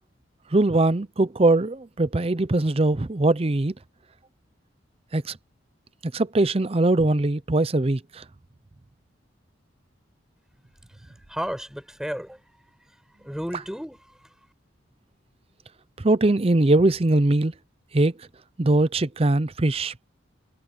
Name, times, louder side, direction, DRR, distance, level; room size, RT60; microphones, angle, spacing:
voice 1, 0.5-3.7 5.1-5.3 6.0-8.0 16.0-17.5 17.9-18.1 18.6-20.1, right 2 dB, 30° right, 0.6 m, -21 dB
voice 2, 10.9-12.4 13.2-14.3, equal, 5° right, 5.3 m, -34 dB
head